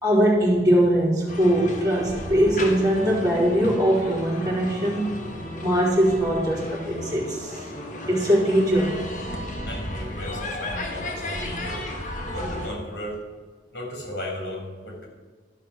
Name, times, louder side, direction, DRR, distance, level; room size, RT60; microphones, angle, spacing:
voice 1, 0.0-5.1 5.6-7.7 8.1-9.0, equal, 20° right, -7 dB, 3.7 m, -21 dB
sound 1, 1.3-12.7, left 1 dB, 50° left, 1.5 m, -34 dB
voice 2, 9.7-11.8 12.3-13.2 13.7-15.1, left 1 dB, 75° left, -1 dB, 3.8 m, -35 dB
12.5 x 5.8 x 6.4 m, 1.4 s
head